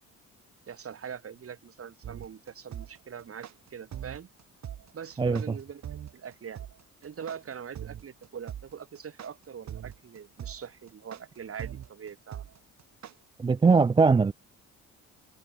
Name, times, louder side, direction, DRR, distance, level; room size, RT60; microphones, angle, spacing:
voice 1, 0.7-4.3 4.9-6.6 7.0-12.4, right 7 dB, 50° right, 3.9 m, -42 dB
sound 1, 2.0-13.1, right 10 dB, 65° right, 5.4 m, -41 dB
voice 2, 13.4-14.3, right 4 dB, 15° right, 0.4 m, -20 dB
cardioid pair, 90°, 30 cm